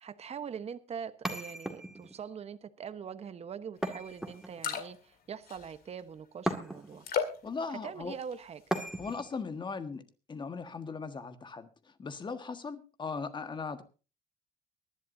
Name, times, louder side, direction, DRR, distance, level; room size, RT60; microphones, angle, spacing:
voice 1, 0.0-7.1 7.7-8.6, right 7 dB, 40° right, 1.1 m, -43 dB
sound 1, 1.2-2.2 3.8-4.8 6.5-7.1 8.7-9.3, right 1 dB, 5° right, 2.0 m, -36 dB
sound 2, 4.0-4.1 4.4-5.1 5.5-6.0 7.0-7.5 8.0-8.5 8.9-9.1, left 7 dB, 60° left, 2.2 m, -35 dB
voice 2, 7.4-8.1 9.0-13.8, left 4 dB, 25° left, 1.5 m, -39 dB
23.5 x 11.0 x 2.7 m
cardioid pair, 110°, 17 cm